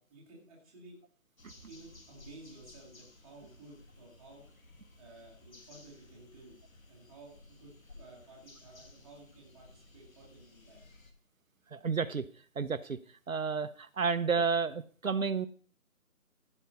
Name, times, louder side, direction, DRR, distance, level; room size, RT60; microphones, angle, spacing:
voice 1, 0.1-1.0 1.7-4.5 5.0-6.6 6.9-10.8, right 2 dB, ahead, -9 dB, 1.2 m, -54 dB
sound 1, 1.4-11.1, left 2 dB, 70° left, 2.6 m, -57 dB
voice 2, 11.7-12.3 12.6-13.0 13.3-15.5, right 5 dB, 70° right, 12 dB, 0.9 m, -31 dB
15.5 x 5.5 x 5.5 m, 0.43 s
figure-of-eight pair, 160°, 43 cm